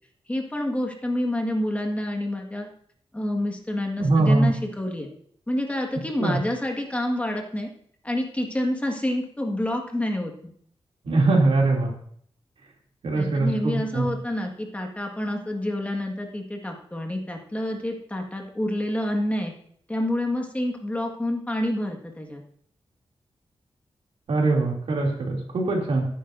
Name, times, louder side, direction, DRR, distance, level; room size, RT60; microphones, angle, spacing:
voice 1, 0.3-2.7 3.1-5.1 5.5-7.7 8.0-10.3 13.2-19.5 19.9-22.4, left 1 dB, 15° left, 1 dB, 1.7 m, -28 dB
voice 2, 4.0-4.5 6.2-6.4 11.0-11.9 13.0-14.1 24.3-26.1, right 2 dB, 90° right, -1 dB, 2.8 m, -22 dB
16.0 x 9.4 x 2.7 m, 0.63 s
wide cardioid pair, 120°, 10 cm